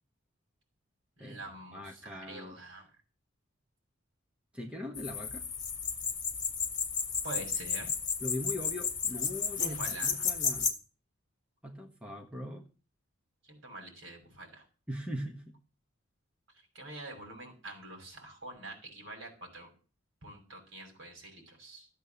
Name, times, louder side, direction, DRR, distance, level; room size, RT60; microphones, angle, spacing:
voice 1, 1.2-2.9 7.2-7.9 9.6-10.3 13.5-14.6 16.7-19.7 20.2-21.9, right 2 dB, 60° right, 6.4 m, -45 dB
voice 2, 1.7-2.6 4.5-5.4 8.2-9.8 10.0-10.7 11.6-12.7 14.9-15.6, left 1 dB, 5° right, 1.3 m, -40 dB
sound 1, 5.0-10.7, left 6 dB, 35° left, 2.4 m, -33 dB
15.0 x 8.3 x 7.0 m
head